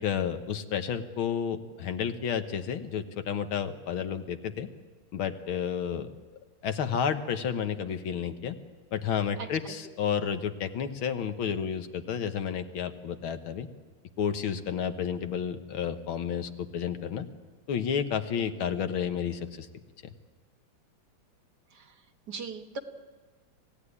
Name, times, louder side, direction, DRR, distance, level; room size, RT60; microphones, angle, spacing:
voice 1, 0.0-4.7 5.1-6.1 6.6-8.6 8.9-13.7 14.2-17.3 17.7-19.7 20.0-20.1, left 8 dB, 80° left, 8 dB, 2.1 m, -31 dB
voice 2, 9.4-9.8 21.8-21.9 22.3-22.8, right 4 dB, 55° right, 6 dB, 1.8 m, -38 dB
25.5 x 17.0 x 9.9 m, 1.4 s
omnidirectional pair, 2.2 m